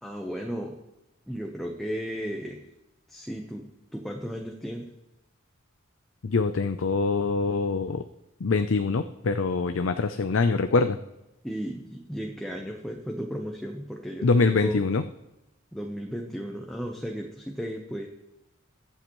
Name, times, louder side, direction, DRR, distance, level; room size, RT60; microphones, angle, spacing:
voice 1, 0.0-0.8 1.3-2.6 3.1-4.9 11.4-14.8 15.7-18.1, equal, ahead, 0 dB, 0.9 m, -35 dB
voice 2, 6.2-8.0 8.4-11.0 14.2-15.0, left 4 dB, 80° left, 9 dB, 0.6 m, -24 dB
23.0 x 7.9 x 3.1 m, 0.93 s
head